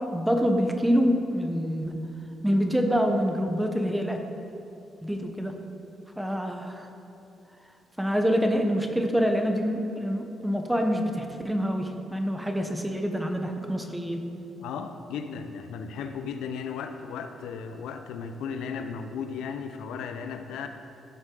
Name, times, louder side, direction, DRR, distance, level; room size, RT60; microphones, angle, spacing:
voice 1, 0.0-1.9 2.4-4.2 5.0-5.6 6.2-6.9 8.0-14.2, equal, 5° right, 4 dB, 1.0 m, -26 dB
voice 2, 14.6-20.7, left 6 dB, 85° left, 7 dB, 0.7 m, -35 dB
14.5 x 6.1 x 3.9 m, 2.9 s
cardioid pair, 90°, 0 cm